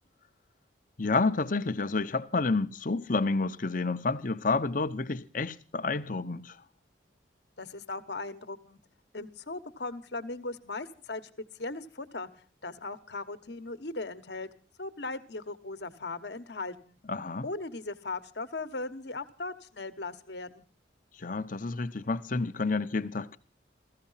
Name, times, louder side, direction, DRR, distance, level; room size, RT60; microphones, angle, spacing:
voice 1, 1.0-6.6 17.1-17.5 21.2-23.4, left 3 dB, 45° left, 0.8 m, -29 dB
voice 2, 7.6-8.8 9.1-11.3 11.6-12.3 12.6-14.5 14.8-17.0 17.4-20.6, left 3 dB, 60° left, 1.2 m, -38 dB
16.0 x 14.5 x 5.7 m
head